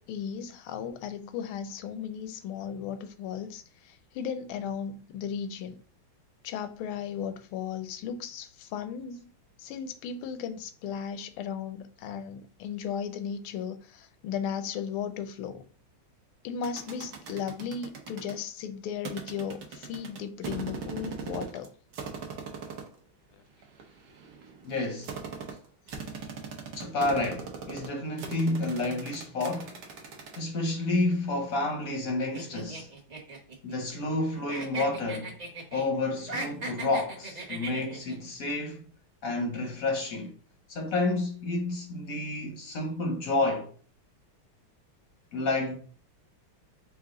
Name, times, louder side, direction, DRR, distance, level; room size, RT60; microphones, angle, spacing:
voice 1, 0.0-5.8 6.4-9.3 9.6-15.6 16.4-21.7, left 7 dB, 80° left, 1.4 m, -36 dB
sound 1, 16.6-18.3 19.0-21.7 21.9-22.9 23.6-30.4, right 6 dB, 60° right, 1.3 m, -40 dB
voice 2, 24.6-25.1 26.7-29.8 30.4-32.9 33.6-35.4 35.7-38.8 39.2-40.3 40.7-43.7 45.3-45.8, left 2 dB, 60° left, 0.9 m, -30 dB
sound 2, 32.3-34.2 34.5-35.9 36.2-38.2, right 3 dB, 45° right, 0.5 m, -38 dB
4.7 x 2.4 x 3.6 m
omnidirectional pair, 2.3 m